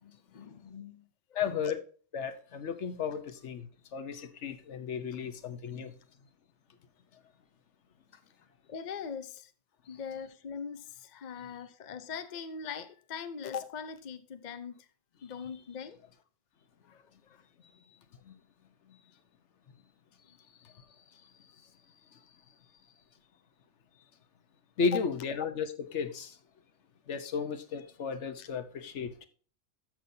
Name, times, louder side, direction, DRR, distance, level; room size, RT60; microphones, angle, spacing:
voice 1, 0.0-1.6 8.7-9.5 9.9-14.9 15.2-16.0 16.8-17.4 24.8-25.0 28.4-28.5, left 6 dB, 45° left, 0.7 m, -41 dB
voice 2, 1.3-1.8 2.1-5.9 18.3-18.4 24.8-26.3 27.1-29.1, left 6 dB, 65° left, 1.2 m, -34 dB
13.5 x 6.0 x 2.7 m
omnidirectional pair, 1.3 m